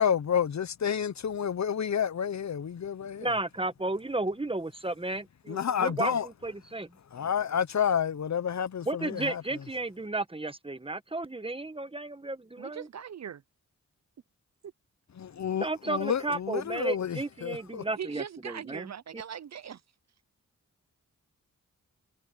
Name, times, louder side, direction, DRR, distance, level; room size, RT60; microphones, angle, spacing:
voice 1, 0.0-3.3 5.5-6.3 7.1-9.4 15.2-17.8, left 8 dB, 55° left, 0.8 m, -30 dB
voice 2, 3.2-6.9 8.9-12.9 15.6-18.9, right 2 dB, 15° right, 1.2 m, -33 dB
voice 3, 5.8-6.2 12.6-13.4 18.0-19.8, right 8 dB, 55° right, 0.5 m, -40 dB
cardioid pair, 70°, 33 cm